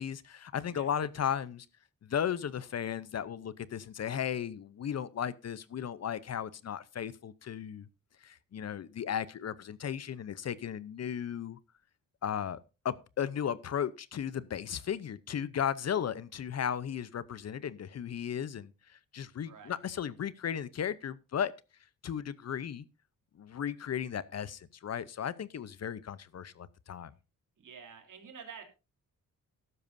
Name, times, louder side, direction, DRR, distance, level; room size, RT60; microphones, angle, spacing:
voice 1, 0.0-1.7 2.0-7.9 8.2-11.6 12.2-12.6 12.8-21.5 22.0-22.8 23.4-27.1, left 8 dB, 50° left, 0.7 m, -35 dB
voice 2, 0.6-0.9 19.4-19.8 27.6-28.6, right 6 dB, 65° right, 3.3 m, -49 dB
14.5 x 12.5 x 2.6 m
wide cardioid pair, 130°, 33 cm